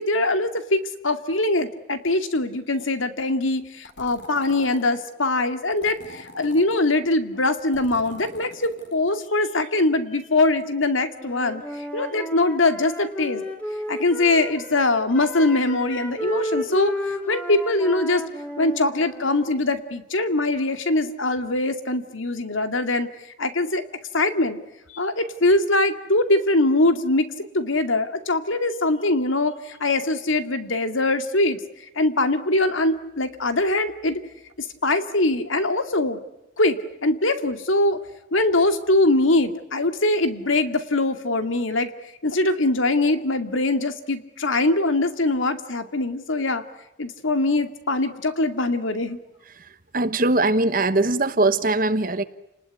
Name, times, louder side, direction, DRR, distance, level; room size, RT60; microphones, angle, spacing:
voice 1, 0.0-11.6 11.9-13.4 13.9-17.0 17.3-18.2 18.6-23.1 23.4-23.8 24.1-24.6 24.9-31.6 32.0-34.2 34.6-36.2 36.6-38.0 38.3-41.9 42.2-46.6 47.0-49.2, left 2 dB, 90° left, 8 dB, 2.3 m, -22 dB
sound 1, 3.8-5.0 5.7-6.9 7.5-9.0, left 2 dB, 55° left, 4.2 m, -44 dB
Wind instrument woodwind instrument, 11.1-14.8 15.1-19.5, left 1 dB, 5° left, 3.0 m, -33 dB
voice 2, 49.9-52.2, right 2 dB, 45° right, 10 dB, 1.1 m, -21 dB
30.0 x 20.0 x 9.7 m, 0.93 s
head